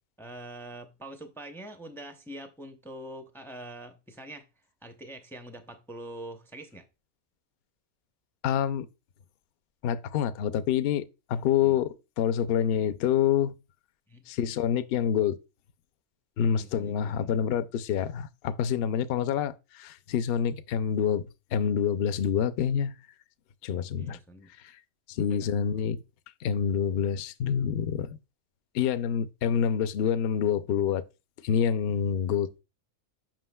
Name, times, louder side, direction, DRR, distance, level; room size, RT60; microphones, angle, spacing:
voice 1, 0.2-4.5 4.8-6.8 11.6-11.8 14.1-14.3 16.5-17.6 24.0-24.5 25.1-25.5, right 1 dB, 5° left, 0.5 m, -44 dB
voice 2, 8.4-8.9 9.8-13.5 14.3-15.4 16.4-22.9 23.6-24.2 24.6-24.8 25.1-26.0 26.4-28.2 28.7-31.1 31.4-32.6, left 8 dB, 65° left, 0.6 m, -27 dB
7.5 x 5.8 x 2.2 m
omnidirectional pair, 1.3 m